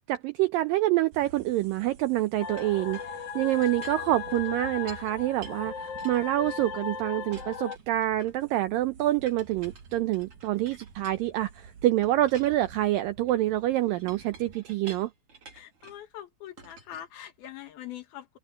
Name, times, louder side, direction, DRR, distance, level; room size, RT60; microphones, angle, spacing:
voice 1, 0.1-3.0 3.4-15.1, right 15 dB, 85° right, 2.0 m, -26 dB
sound 1, 1.1-14.6, right 5 dB, 55° right, 3.2 m, -51 dB
sound 2, 2.4-7.8, left 7 dB, 50° left, 2.1 m, -37 dB
Chink clink, 2.6-5.1 5.4-6.9 7.3-8.5 9.3-11.6 12.0-16.1 16.6-17.7, right 4 dB, 35° right, 3.7 m, -51 dB
voice 2, 15.5-18.4, left 12 dB, 70° left, 3.2 m, -43 dB
open air
omnidirectional pair, 4.8 m